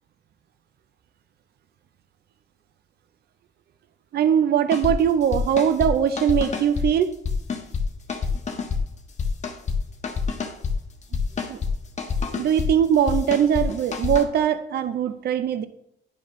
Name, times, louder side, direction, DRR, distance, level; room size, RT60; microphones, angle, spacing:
voice 1, 4.1-7.1 11.5-11.6 12.3-15.7, right 9 dB, 55° right, 12 dB, 0.5 m, -21 dB
sound 1, 4.7-4.9 5.3-5.9 6.2-6.9 7.2-8.8 9.2-9.8 10.0-10.7 11.1-11.7 12.0-12.7 13.1-14.2, left 5 dB, 35° left, 1.0 m, -27 dB
9.5 x 5.0 x 3.1 m, 0.75 s
cardioid pair, 90°, 20 cm